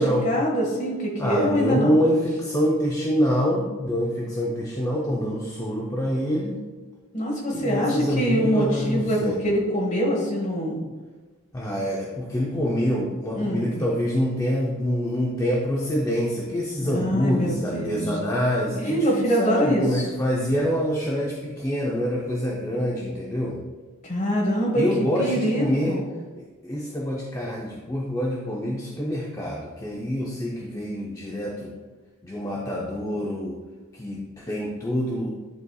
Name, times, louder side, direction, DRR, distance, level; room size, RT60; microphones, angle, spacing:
voice 1, 0.2-2.0 7.1-10.8 13.3-13.7 16.8-18.0 18.7-20.1 24.0-24.8 25.2-26.0, equal, 35° left, -2 dB, 1.4 m, -24 dB
voice 2, 1.2-6.6 7.6-9.4 11.5-23.6 24.8-26.0 26.3-31.7 32.2-33.6 33.9-35.3, equal, 15° left, -4 dB, 0.6 m, -26 dB
11.0 x 4.0 x 2.3 m, 1.3 s
head